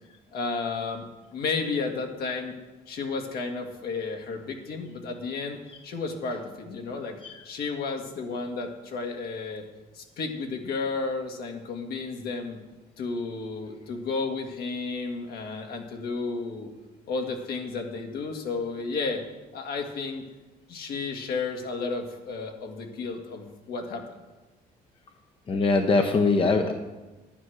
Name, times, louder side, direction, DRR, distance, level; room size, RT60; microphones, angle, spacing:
voice 1, 0.3-2.5 2.9-5.6 5.8-7.2 7.4-9.7 9.9-12.6 13.0-16.7 17.1-19.2 19.5-20.2 20.7-24.0, left 4 dB, 65° left, 2 dB, 1.9 m, -32 dB
voice 2, 25.5-26.7, left 3 dB, 30° left, 4 dB, 1.0 m, -22 dB
10.0 x 9.4 x 6.4 m, 1.1 s
cardioid pair, 110°, 17 cm